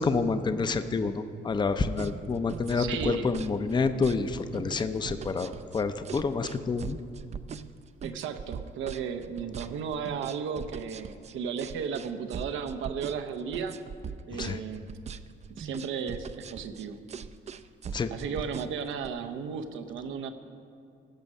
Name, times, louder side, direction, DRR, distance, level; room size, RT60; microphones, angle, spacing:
voice 1, 0.0-7.0 14.4-14.6 17.9-18.1, left 4 dB, 20° left, 10 dB, 0.5 m, -28 dB
sound 1, 1.7-19.1, right 6 dB, 35° right, 0.4 m, -40 dB
voice 2, 2.7-3.3 8.0-13.8 14.3-14.9 15.6-17.0 18.1-20.3, right 6 dB, 85° right, 8 dB, 0.7 m, -34 dB
17.0 x 6.2 x 5.4 m, 2.4 s
cardioid pair, 90°, 20 cm